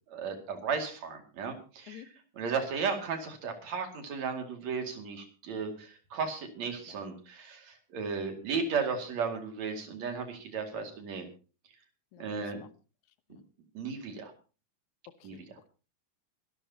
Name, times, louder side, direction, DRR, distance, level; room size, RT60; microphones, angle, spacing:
voice 1, 0.1-2.1 2.4-11.3 12.2-12.6 13.8-14.3 15.2-15.5, right 5 dB, 60° right, 4 dB, 3.5 m, -35 dB
voice 2, 12.1-12.7 13.3-13.4 15.2-15.7, left 10 dB, 70° left, 12 dB, 2.2 m, -50 dB
24.0 x 13.0 x 2.8 m, 0.35 s
omnidirectional pair, 3.7 m